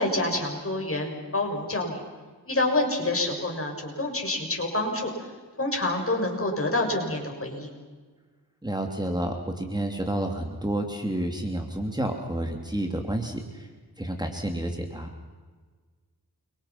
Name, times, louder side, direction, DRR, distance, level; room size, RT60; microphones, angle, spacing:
voice 1, 0.0-2.0 2.5-5.3 5.6-7.7, left 2 dB, 35° left, 1 dB, 6.9 m, -27 dB
voice 2, 8.6-13.7 14.0-15.1, right 1 dB, 10° right, 3 dB, 3.0 m, -30 dB
29.5 x 24.5 x 6.0 m, 1.4 s
cardioid pair, 75°, 39 cm